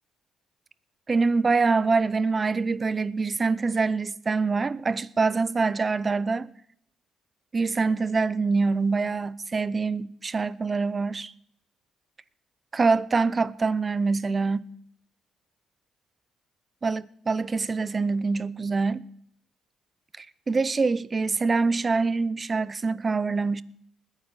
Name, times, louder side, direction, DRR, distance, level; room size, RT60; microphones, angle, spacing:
voice 1, 1.1-6.5 7.5-11.3 12.7-14.7 16.8-19.1 20.2-23.6, right 4 dB, 30° right, 0.6 m, -25 dB
20.5 x 8.9 x 4.1 m
cardioid pair, 90°, 0 cm